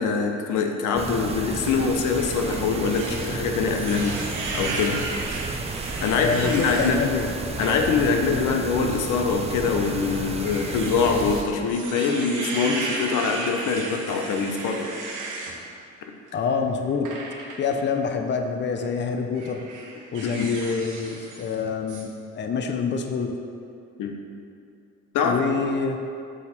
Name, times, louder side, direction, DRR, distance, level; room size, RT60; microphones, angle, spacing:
voice 1, 0.0-4.2 4.5-5.0 6.0-7.0 7.6-14.9 20.2-20.5 24.0-24.2 25.1-25.4, left 5 dB, 85° left, 4 dB, 0.7 m, -24 dB
sound 1, 0.9-11.4, right 4 dB, 20° right, 0.6 m, -32 dB
sound 2, 2.2-6.9 7.4-7.8 8.2-8.4 9.4-15.6 17.0-17.7 18.6-18.9 19.3-21.6 21.9-22.0, right 3 dB, 85° right, 1.1 m, -35 dB
voice 2, 6.1-7.3 16.3-17.2 17.6-19.6 20.1-23.4 25.2-26.0, left 5 dB, 35° left, 5 dB, 0.5 m, -26 dB
7.3 x 4.2 x 4.1 m, 2.5 s
cardioid pair, 90°, 30 cm